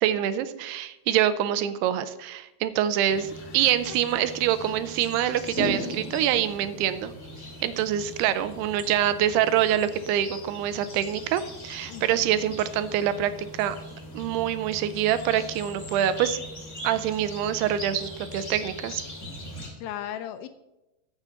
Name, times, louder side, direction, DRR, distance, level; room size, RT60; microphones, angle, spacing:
voice 1, 0.0-7.1 7.6-13.8 14.1-16.4 16.8-19.0, right 11 dB, 90° right, 13 dB, 2.7 m, -25 dB
sound 1, 3.1-19.7, equal, 20° left, 2.2 m, -39 dB
voice 2, 3.9-4.3 11.9-12.5 19.8-20.5, left 11 dB, 80° left, 9 dB, 2.3 m, -38 dB
14.0 x 7.1 x 4.0 m, 0.96 s
omnidirectional pair, 4.6 m